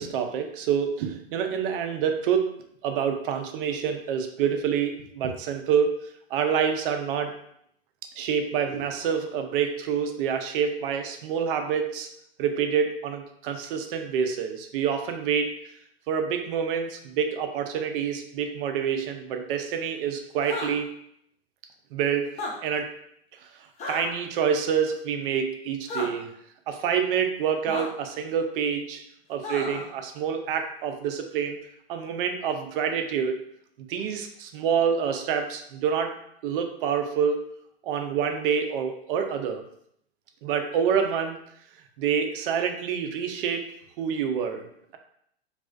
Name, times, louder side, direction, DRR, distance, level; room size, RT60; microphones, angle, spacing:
voice 1, 0.0-2.5 2.8-6.0 6.3-7.3 8.2-12.1 12.4-15.5 16.1-20.9 21.9-22.3 22.6-22.9 23.9-26.3 26.7-29.0 29.3-31.6 31.9-33.4 33.9-36.2 36.4-37.5 37.8-39.6 40.4-41.4 42.0-43.7 44.0-44.6, right 7 dB, 60° right, 6 dB, 0.5 m, -27 dB
sound 1, 20.4-20.7 22.3-22.5 23.8-24.1 25.9-26.1 27.7-27.8 29.4-29.9, left 3 dB, 20° left, 0.5 m, -32 dB
2.4 x 2.4 x 2.2 m, 0.70 s
hypercardioid pair, 115°, 31 cm